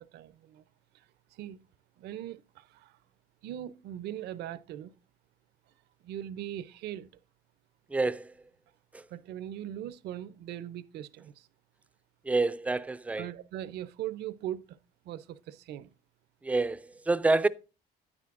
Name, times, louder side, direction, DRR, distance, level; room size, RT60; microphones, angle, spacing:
voice 1, 0.1-0.6 1.4-1.6 2.0-2.9 3.4-4.9 6.0-7.1 9.1-11.3 13.2-14.7 15.1-15.9, right 11 dB, 75° right, 0.6 m, -40 dB
voice 2, 7.9-8.3 8.9-9.0 12.3-13.3 16.4-17.5, right 3 dB, 10° right, 0.3 m, -27 dB
9.7 x 9.0 x 2.5 m
cardioid pair, 110°, 17 cm